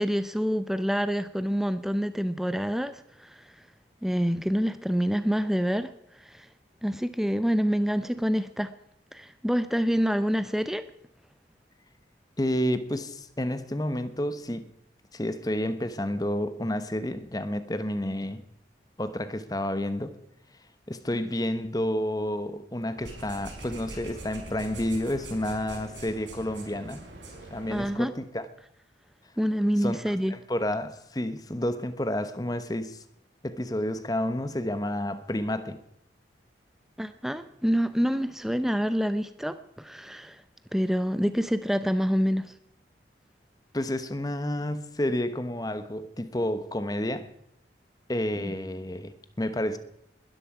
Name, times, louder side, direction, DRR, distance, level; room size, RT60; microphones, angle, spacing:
voice 1, 0.0-3.5 4.0-6.5 6.8-8.7 9.1-10.8 27.7-28.1 29.4-30.4 37.0-40.4 40.7-42.5 48.4-48.5, equal, ahead, 0.6 m, -27 dB
voice 2, 12.4-14.7 15.1-18.4 19.0-20.1 20.9-27.0 27.5-28.5 29.8-33.0 33.4-35.8 43.7-47.3 48.1-49.8, left 1 dB, 20° left, 0.9 m, -30 dB
sound 1, 23.0-27.9, right 2 dB, 80° right, 5.2 m, -43 dB
21.0 x 13.0 x 4.9 m
head